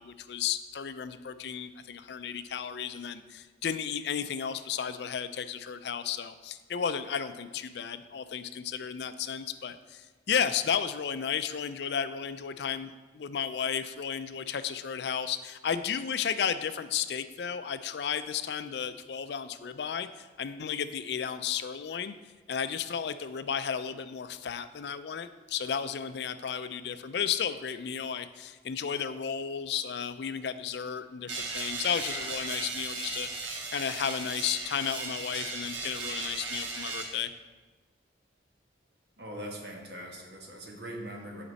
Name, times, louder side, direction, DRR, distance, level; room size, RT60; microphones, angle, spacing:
voice 1, 0.0-22.1 22.5-37.3, left 7 dB, 65° left, 12 dB, 0.4 m, -33 dB
sound 1, 31.3-37.0, right 3 dB, 90° right, 1.4 m, -36 dB
voice 2, 39.2-41.4, equal, 65° right, 0 dB, 1.4 m, -41 dB
10.0 x 5.1 x 4.1 m, 1.3 s
head